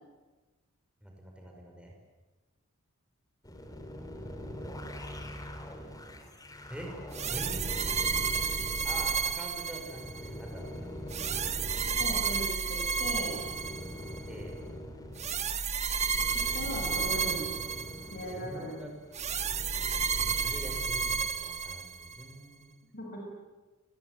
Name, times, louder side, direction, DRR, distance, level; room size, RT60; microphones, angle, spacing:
voice 1, 1.0-1.9 6.7-6.9 7.2-7.8 8.8-10.6 14.3-14.6 18.2-19.0 20.2-22.7, equal, 5° right, 1 dB, 5.2 m, -44 dB
sound 1, 3.4-21.1, equal, 15° left, 3.2 m, -44 dB
sound 2, 7.1-10.3 11.1-14.2 15.2-18.3 19.1-22.2, right 5 dB, 30° right, 1.2 m, -32 dB
voice 2, 12.0-13.3 16.5-17.5 18.1-18.7 22.9-23.2, equal, 45° left, -1 dB, 6.9 m, -38 dB
29.0 x 21.5 x 9.4 m, 1.2 s
head